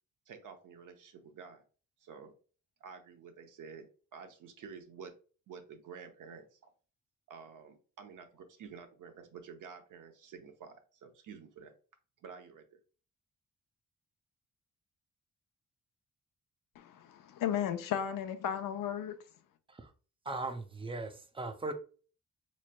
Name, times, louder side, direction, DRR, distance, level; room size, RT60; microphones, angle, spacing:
voice 1, 0.3-1.6 2.0-2.3 2.8-5.1 5.5-6.7 7.3-11.7 12.2-12.8, right 6 dB, 70° right, 0.8 m, -50 dB
voice 2, 16.8-19.2, left 9 dB, 85° left, 0.6 m, -34 dB
voice 3, 20.3-21.7, right 2 dB, 15° right, 0.5 m, -38 dB
4.1 x 3.1 x 2.2 m
cardioid pair, 115°, 32 cm